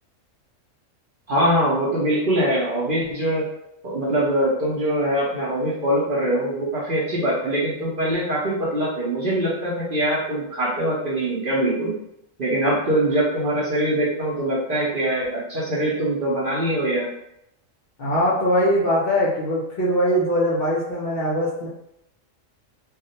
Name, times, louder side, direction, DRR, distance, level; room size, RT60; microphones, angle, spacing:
voice 1, 1.3-3.5 3.8-11.9 12.4-17.1, right 1 dB, 55° right, -7 dB, 0.6 m, -23 dB
voice 2, 18.0-21.7, equal, 60° left, -6 dB, 0.6 m, -21 dB
2.4 x 2.0 x 2.7 m, 0.80 s
omnidirectional pair, 1.4 m